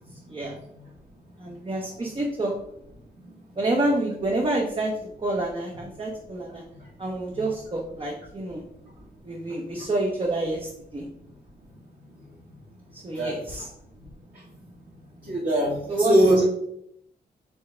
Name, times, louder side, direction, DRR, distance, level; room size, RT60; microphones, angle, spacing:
voice 1, 1.4-2.5 3.6-4.9 5.2-6.6 7.0-8.6 9.2-11.1 12.9-13.7 15.9-16.2, right 2 dB, 30° right, -1 dB, 0.8 m, -28 dB
voice 2, 15.2-16.4, right 1 dB, 50° right, -7 dB, 1.4 m, -21 dB
4.4 x 3.4 x 3.3 m, 0.75 s
cardioid pair, 85°, 18 cm